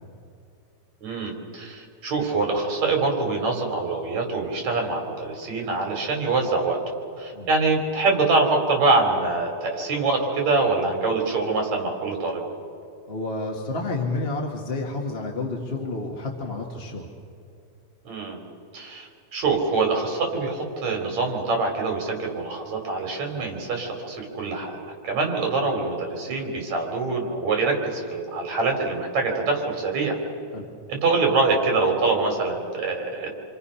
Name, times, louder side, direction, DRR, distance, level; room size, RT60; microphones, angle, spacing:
voice 1, 1.0-12.4 18.0-18.4 18.7-30.2 30.9-33.3, right 3 dB, 65° right, 2 dB, 4.5 m, -24 dB
voice 2, 13.1-17.1 30.5-30.7, left 2 dB, 30° left, -1 dB, 1.2 m, -30 dB
27.5 x 26.0 x 5.7 m, 2.5 s
omnidirectional pair, 3.4 m